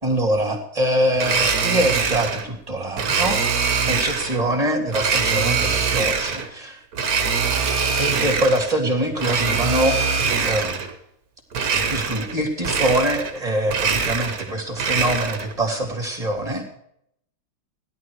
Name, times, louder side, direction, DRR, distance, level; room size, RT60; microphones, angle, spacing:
voice 1, 0.0-6.8 8.0-10.0 10.3-10.8 11.9-16.7, right 1 dB, 20° right, 2 dB, 2.9 m, -24 dB
Domestic sounds home sounds, 1.1-2.5 3.0-4.4 4.9-6.5 6.9-8.7 9.1-10.9 11.5-12.4 12.6-13.4 13.6-15.5, right 5 dB, 50° right, 1.7 m, -23 dB
16.5 x 11.5 x 4.8 m, 0.74 s
omnidirectional pair, 2.2 m